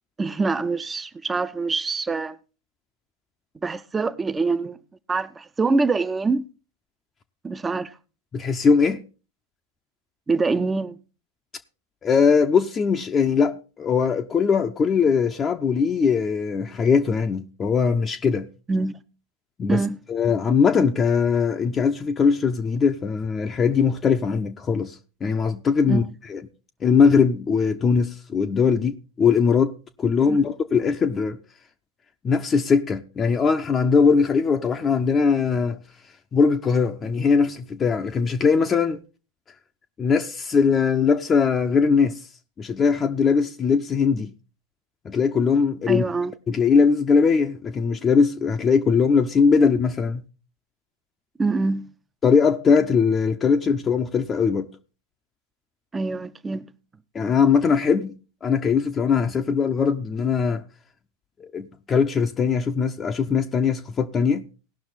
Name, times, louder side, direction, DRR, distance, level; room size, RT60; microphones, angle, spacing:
voice 1, 0.2-2.4 3.6-4.8 5.1-6.4 7.4-7.9 10.3-11.0 18.7-19.0 19.7-20.0 25.9-26.0 30.3-30.4 45.9-46.3 51.4-51.9 55.9-56.7, right 3 dB, 15° right, 0.7 m, -24 dB
voice 2, 8.3-9.0 12.0-18.5 19.6-19.8 20.1-26.0 26.3-26.4 26.8-31.4 32.2-35.8 36.3-39.0 40.0-42.3 42.6-44.3 45.0-46.0 46.5-50.2 52.2-54.7 57.1-58.1 58.4-60.6 61.4-64.4, left 5 dB, 20° left, 0.7 m, -20 dB
18.0 x 6.1 x 4.1 m
figure-of-eight pair, 90°, 0 cm